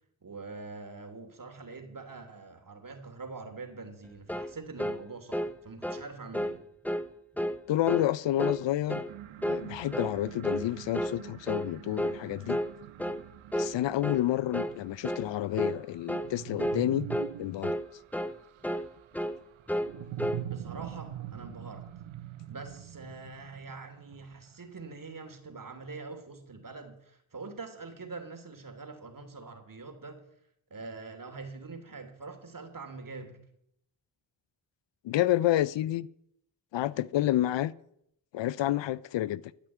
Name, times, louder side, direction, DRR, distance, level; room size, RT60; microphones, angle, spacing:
voice 1, 0.2-6.6 20.4-21.9 22.5-30.2 30.7-33.4, right 4 dB, 45° right, 3.0 m, -44 dB
sound 1, 4.3-4.5 4.8-5.0 5.3-5.5 5.8-6.1 6.3-6.6 6.9-7.1 7.4-7.6 7.9-8.1 8.4-8.6 8.9-9.1 9.4-9.7 9.9-10.2 10.4-10.7 10.9-11.2 11.5-11.7 12.0-12.2 12.5-12.7 13.0-13.2 13.5-13.7 14.0-14.2 14.5-14.8 15.0-15.3 15.6-15.8 16.1-16.3 16.6-16.8 17.1-17.3 17.6-17.9 18.1-18.4 18.6-18.9 19.1-19.4 19.7-19.9 20.2-20.4, equal, 5° left, 0.7 m, -31 dB
voice 2, 7.7-9.0 9.5-12.6 13.5-17.1 17.4-17.7 35.0-36.1 36.7-37.7 38.3-39.4, left 13 dB, 70° left, 0.6 m, -29 dB
sound 2, 9.1-24.6, right 11 dB, 80° right, 0.9 m, -44 dB
12.5 x 6.0 x 9.2 m
supercardioid pair, 45°, 47 cm